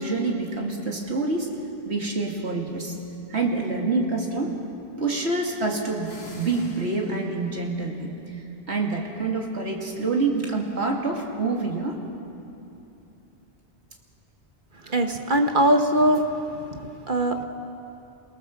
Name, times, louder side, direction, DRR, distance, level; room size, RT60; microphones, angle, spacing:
voice 1, 0.0-1.5 1.8-2.9 3.3-4.6 5.0-12.0, right 3 dB, 80° right, 0 dB, 2.7 m, -27 dB
sound 1, 6.0-7.6, left 2 dB, 70° left, 2.4 m, -45 dB
voice 2, 14.9-16.3 16.7-17.4, right 1 dB, 50° right, 5 dB, 1.4 m, -21 dB
27.5 x 19.0 x 7.2 m, 2.8 s
omnidirectional pair, 1.1 m